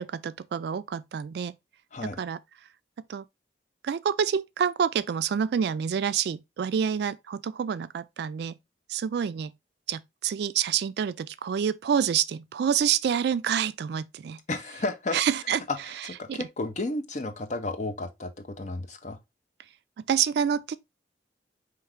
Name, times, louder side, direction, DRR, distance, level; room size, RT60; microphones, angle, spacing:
voice 1, 0.0-1.5 2.0-2.4 3.1-3.2 3.8-8.6 8.9-9.5 9.9-14.4 15.1-15.6 16.3-16.5 20.1-20.8, right 8 dB, 60° right, 0.3 m, -27 dB
voice 2, 14.5-15.2 15.7-15.8 16.0-19.2, left 2 dB, 40° left, 0.7 m, -32 dB
4.5 x 3.1 x 3.5 m
head